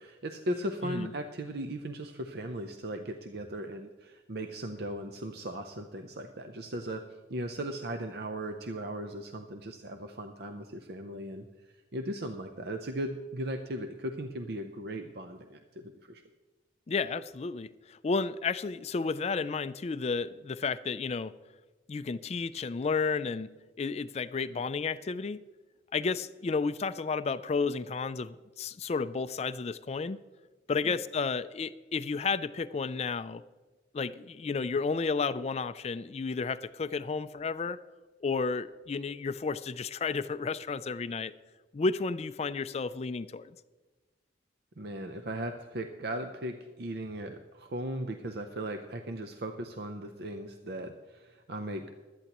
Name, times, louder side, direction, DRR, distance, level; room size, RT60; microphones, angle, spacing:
voice 1, 0.0-7.0 7.3-11.5 11.9-16.2 30.8-31.0 44.8-51.9, right 1 dB, 60° right, 6 dB, 0.6 m, -37 dB
voice 2, 16.9-21.3 21.9-23.5 23.8-25.4 25.9-30.2 30.7-33.4 33.9-37.8 38.2-41.3 41.7-43.5, left 4 dB, 35° left, 14 dB, 0.4 m, -32 dB
16.0 x 12.5 x 3.0 m, 1.2 s
head